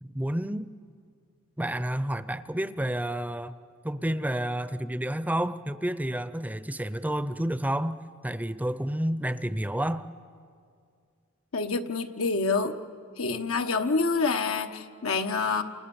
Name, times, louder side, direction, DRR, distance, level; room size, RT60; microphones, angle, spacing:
voice 1, 0.0-0.7 1.6-3.5 3.8-8.0 8.2-10.1, right 1 dB, 5° right, 0.6 m, -30 dB
voice 2, 11.5-12.8 13.2-15.6, left 4 dB, 80° left, 1.2 m, -27 dB
29.0 x 28.5 x 7.1 m
head